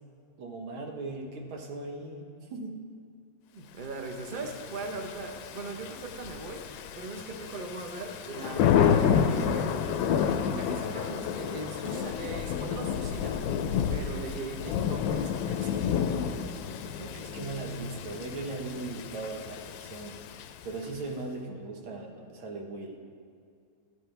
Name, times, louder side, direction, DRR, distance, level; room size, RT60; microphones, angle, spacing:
voice 1, 0.4-2.8 17.0-20.2 20.6-23.0, right 3 dB, 85° right, 1 dB, 2.0 m, -38 dB
voice 2, 3.5-9.8 10.2-13.4 13.9-15.9, right 3 dB, 45° right, 3 dB, 0.6 m, -40 dB
Thunder / Rain, 4.3-20.8, left 8 dB, 80° left, 1.3 m, -30 dB
11.5 x 11.5 x 3.4 m, 2.4 s
omnidirectional pair, 2.2 m